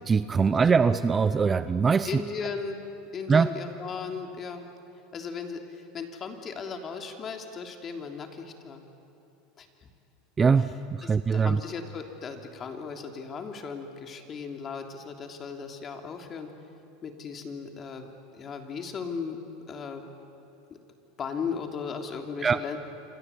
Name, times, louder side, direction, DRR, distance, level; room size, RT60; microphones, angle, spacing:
voice 1, 0.1-2.1 3.3-3.5 10.4-10.7 11.1-11.6 22.4-22.6, right 5 dB, 20° right, 14 dB, 0.6 m, -22 dB
voice 2, 2.0-2.8 3.1-4.7 5.1-8.8 9.6-9.9 10.6-10.7 11.0-16.5 17.0-19.4 19.7-20.0 21.2-22.8, left 5 dB, 30° left, 4 dB, 3.0 m, -37 dB
28.0 x 25.5 x 8.4 m, 2.9 s
supercardioid pair, 135°, 0 cm